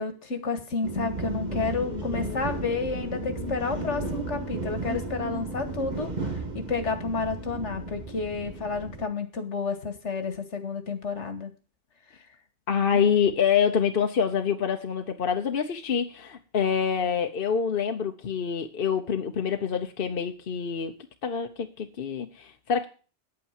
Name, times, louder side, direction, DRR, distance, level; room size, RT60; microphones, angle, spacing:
voice 1, 0.0-11.5 12.9-13.0, left 4 dB, 80° left, 9 dB, 2.0 m, -31 dB
sound 1, 0.8-9.0, right 2 dB, 40° right, 1.6 m, -34 dB
voice 2, 12.7-20.9 21.2-22.9, left 7 dB, 55° left, 5 dB, 1.1 m, -26 dB
9.5 x 8.7 x 7.3 m, 0.36 s
omnidirectional pair, 1.2 m